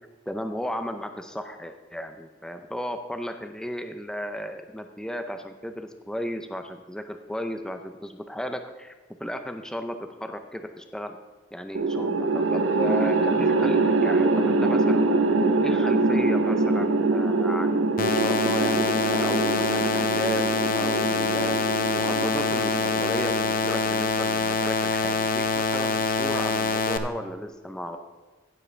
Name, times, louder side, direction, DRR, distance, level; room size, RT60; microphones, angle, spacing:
voice 1, 0.3-8.9 9.2-11.2 11.5-15.1 15.6-20.5 20.7-21.6 21.9-28.0, equal, 5° left, 6 dB, 0.5 m, -34 dB
sound 1, 11.7-24.1, right 3 dB, 80° right, 0.7 m, -24 dB
sound 2, 18.0-27.0, left 3 dB, 45° left, 0.7 m, -25 dB
16.5 x 7.5 x 3.3 m, 1.4 s
head